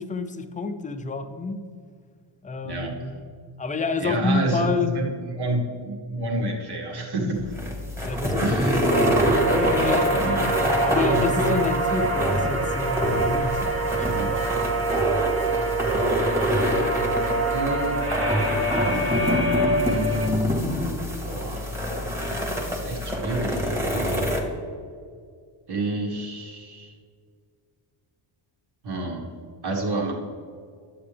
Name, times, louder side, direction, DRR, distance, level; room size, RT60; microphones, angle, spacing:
voice 1, 0.0-1.6 2.4-3.0 3.6-5.0 8.0-9.2 9.5-10.2 10.8-13.6 14.0-14.5, left 4 dB, 15° left, 7 dB, 0.5 m, -28 dB
voice 2, 2.6-3.2 4.0-7.6 8.4-8.9 10.1-10.4 14.1-14.4 15.9-16.1 17.5-18.1 18.6-19.5 19.8-20.6 21.2-21.6 22.7-24.3 25.7-26.9 28.8-29.4 29.6-30.1, right 1 dB, 50° right, 0 dB, 1.9 m, -29 dB
sound 1, 7.4-24.4, equal, 5° right, 1.6 m, -26 dB
sound 2, 8.9-20.3, right 2 dB, 30° right, 1.6 m, -26 dB
10.5 x 7.7 x 3.4 m, 2.2 s
cardioid pair, 130°, 49 cm